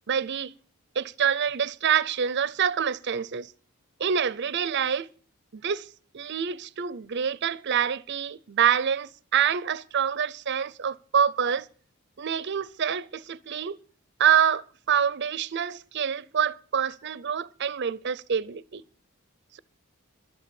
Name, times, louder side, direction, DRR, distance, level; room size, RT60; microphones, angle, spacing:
voice 1, 0.1-0.6 1.0-3.5 4.0-5.1 5.5-5.9 6.1-11.7 12.2-13.8 14.2-18.8, right 8 dB, 50° right, 0.5 m, -26 dB
12.0 x 10.5 x 7.0 m
head